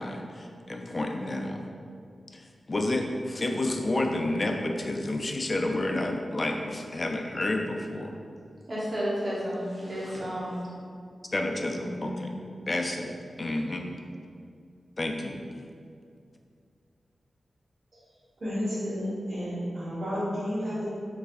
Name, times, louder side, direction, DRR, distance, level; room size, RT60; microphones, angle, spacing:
voice 1, 0.0-1.6 2.3-8.1 11.3-12.3 12.7-13.1 13.4-13.9 15.0-15.4, left 1 dB, 40° left, 2 dB, 0.4 m, -30 dB
voice 2, 8.7-10.7 11.6-12.2, equal, 40° right, -7 dB, 1.1 m, -32 dB
voice 3, 18.4-20.9, equal, 60° right, -14 dB, 1.4 m, -31 dB
4.0 x 3.2 x 2.5 m, 2.3 s
cardioid pair, 60°, 0 cm